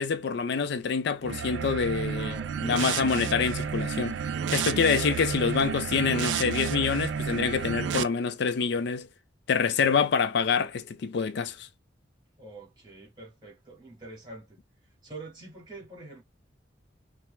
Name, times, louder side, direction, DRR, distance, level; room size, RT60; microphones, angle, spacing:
voice 1, 0.0-4.2 4.5-9.1 9.5-11.7, left 5 dB, 65° left, 0.4 m, -26 dB
sound 1, 1.2-8.0, right 7 dB, 75° right, 0.4 m, -31 dB
voice 2, 2.1-2.9 12.4-14.6 15.0-16.2, right 2 dB, 25° right, 1.9 m, -45 dB
4.4 x 2.1 x 3.2 m
head